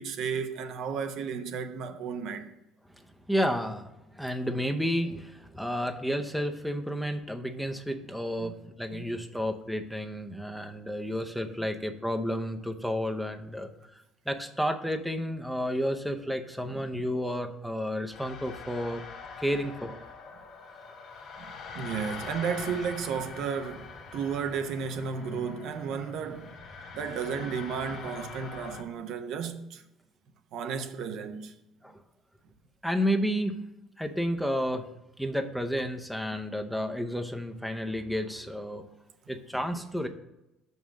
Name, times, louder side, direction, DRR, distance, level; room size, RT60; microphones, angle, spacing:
voice 1, 0.0-2.5 8.4-8.5 8.9-9.0 16.7-16.9 21.4-26.5 26.9-29.8 30.5-31.5, right 6 dB, 65° right, 0.7 m, -33 dB
voice 2, 2.9-13.7 14.3-19.0 19.4-20.0 31.8-32.0 32.8-33.6 34.0-34.9 35.2-38.8 39.3-40.1, equal, ahead, 0.7 m, -31 dB
sound 1, 18.1-28.8, left 5 dB, 60° left, 1.1 m, -43 dB
5.9 x 5.5 x 6.2 m
supercardioid pair, 95°, 0 cm